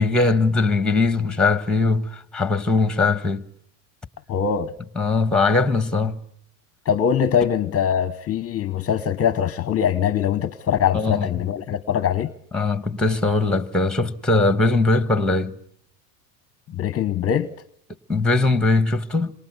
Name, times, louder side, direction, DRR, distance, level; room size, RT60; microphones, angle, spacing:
voice 1, 0.0-3.4 5.0-6.2 10.9-11.3 12.5-15.5 18.1-19.3, left 3 dB, ahead, 1.5 m, -20 dB
voice 2, 4.3-4.7 6.9-12.3 16.8-17.5, left 8 dB, 30° left, 1.0 m, -22 dB
27.5 x 23.0 x 8.0 m
supercardioid pair, 120°, 49 cm